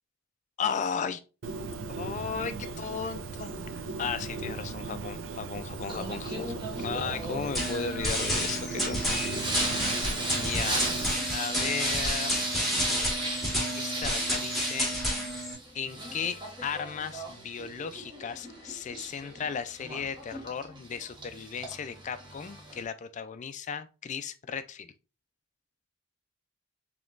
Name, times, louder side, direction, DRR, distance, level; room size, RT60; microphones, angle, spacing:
voice 1, 0.6-1.2 2.0-9.0 10.4-10.8 11.3-12.4 13.7-14.9 15.7-24.9, left 6 dB, 35° left, 0.3 m, -35 dB
Bird, 1.4-11.1, right 3 dB, 65° right, 0.5 m, -38 dB
Singing, 5.9-22.8, right 2 dB, 25° right, 1.0 m, -37 dB
sound 1, 7.5-15.5, equal, ahead, 1.5 m, -30 dB
5.1 x 3.0 x 2.5 m
head